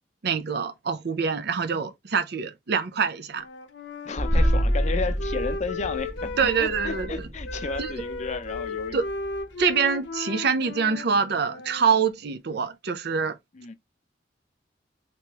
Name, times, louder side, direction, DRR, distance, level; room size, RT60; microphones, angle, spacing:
voice 1, 0.2-3.4 6.4-7.2 7.8-7.9 8.9-9.0 9.6-13.4, right 6 dB, 60° right, 0.6 m, -25 dB
Wind instrument woodwind instrument, 3.3-7.1 7.4-12.0, left 3 dB, 85° left, 0.7 m, -35 dB
voice 2, 4.0-9.0 13.5-13.7, left 4 dB, 40° left, 0.5 m, -33 dB
sound 1, 4.2-9.7, equal, 25° right, 1.0 m, -28 dB
3.4 x 3.1 x 2.9 m
head